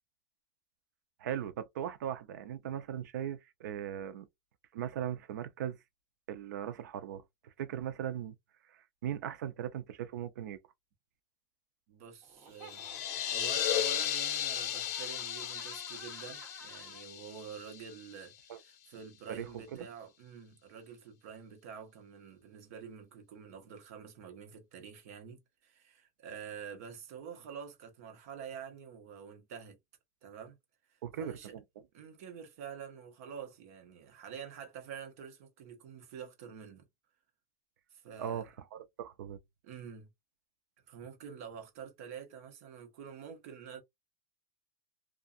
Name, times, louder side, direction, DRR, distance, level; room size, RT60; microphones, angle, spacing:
voice 1, 1.2-4.3 4.7-5.8 6.3-8.3 8.7-10.6 18.5-18.6 19.3-19.5 31.0-31.6 38.2-39.4, right 10 dB, 85° right, 0.5 m, -39 dB
voice 2, 11.9-12.8 13.3-18.3 18.6-29.8 30.2-30.6 30.9-31.5 31.9-36.9 37.9-38.5 39.6-40.1 40.9-43.8, right 7 dB, 55° right, 1.0 m, -47 dB
Laughter, 12.2-17.0, right 4 dB, 40° right, 1.5 m, -54 dB
sound 1, 12.6-18.2, left 11 dB, 55° left, 0.6 m, -35 dB
2.4 x 2.4 x 2.5 m
supercardioid pair, 165°, 9 cm